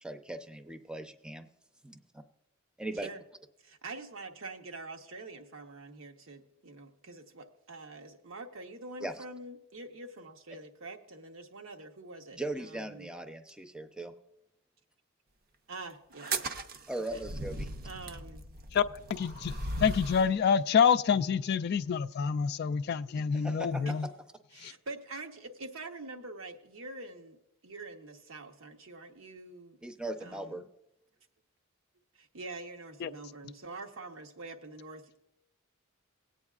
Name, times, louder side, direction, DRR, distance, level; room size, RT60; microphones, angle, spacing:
voice 1, 0.0-1.5 1.8-2.2 2.8-3.1 9.0-9.2 12.3-14.1 16.9-17.7 23.3-23.8 29.8-30.7, right 1 dB, 5° right, 0.6 m, -39 dB
voice 2, 3.6-13.1 15.7-16.6 17.1-17.2 17.8-18.4 24.5-29.8 30.2-30.6 32.1-35.3, right 3 dB, 75° right, 1.0 m, -45 dB
sound 1, 16.1-20.4, right 2 dB, 45° right, 0.6 m, -38 dB
voice 3, 19.1-24.1 24.6-24.7 33.0-33.1, left 7 dB, 50° left, 0.3 m, -27 dB
19.5 x 8.7 x 2.4 m
head